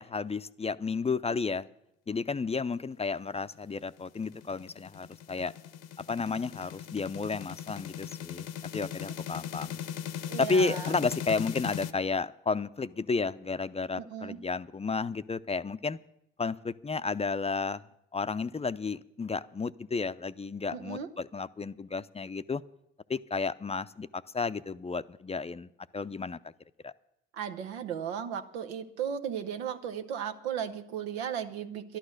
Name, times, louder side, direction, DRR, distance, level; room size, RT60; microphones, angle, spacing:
voice 1, 0.0-1.7 2.1-5.5 6.1-8.5 8.7-9.8 10.4-16.0 16.4-17.8 18.1-22.6 23.1-26.4 26.8-26.9, left 4 dB, 20° left, 13 dB, 0.5 m, -32 dB
sound 1, 3.8-11.9, left 9 dB, 70° left, 0.9 m, -39 dB
voice 2, 10.3-10.9 14.0-14.4 20.7-21.1 27.3-32.0, right 8 dB, 90° right, 7 dB, 0.8 m, -36 dB
11.5 x 11.5 x 6.4 m, 0.79 s
hypercardioid pair, 50°, 31 cm